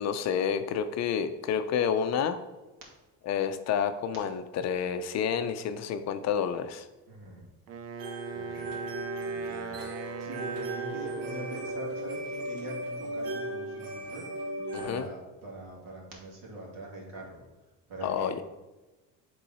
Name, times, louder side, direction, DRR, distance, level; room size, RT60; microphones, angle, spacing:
voice 1, 0.0-2.4 3.3-6.9 14.7-15.0 18.0-18.4, left 7 dB, 45° left, 9 dB, 0.5 m, -29 dB
voice 2, 7.1-7.4 8.0-17.4 17.9-18.4, right 2 dB, 60° right, -2 dB, 2.4 m, -44 dB
Wind instrument woodwind instrument, 7.7-11.8, right 5 dB, 45° right, 0.6 m, -40 dB
sound 1, 8.0-15.0, right 1 dB, 85° right, 1.3 m, -36 dB
8.4 x 3.8 x 4.2 m, 1.1 s
cardioid pair, 140°, 37 cm